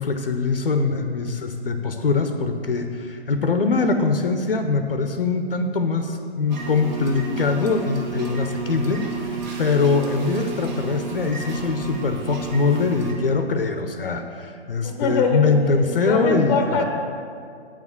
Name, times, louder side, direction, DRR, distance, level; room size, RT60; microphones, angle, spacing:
voice 1, 0.0-16.6, left 4 dB, 55° left, 7 dB, 0.7 m, -23 dB
sound 1, 6.5-13.1, right 5 dB, 45° right, 1.3 m, -32 dB
voice 2, 14.8-15.5 16.0-16.8, left 4 dB, 20° left, 4 dB, 0.8 m, -23 dB
9.1 x 4.9 x 7.4 m, 2.3 s
figure-of-eight pair, 130°, 33 cm